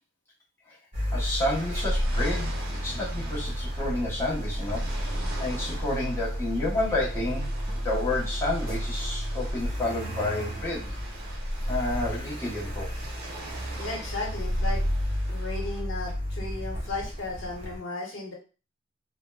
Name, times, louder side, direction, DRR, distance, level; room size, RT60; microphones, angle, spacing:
Car, 0.9-17.8, equal, 30° right, 1.0 m, -31 dB
voice 1, 1.1-5.0 5.4-7.5 7.8-10.9 11.7-12.9, left 2 dB, 15° left, -6 dB, 0.8 m, -30 dB
sound 1, 1.5-15.8, right 2 dB, 55° right, 0.7 m, -44 dB
voice 2, 13.8-14.9 15.3-18.3, left 3 dB, 65° left, -1 dB, 0.9 m, -35 dB
3.5 x 2.1 x 2.2 m, 0.33 s
head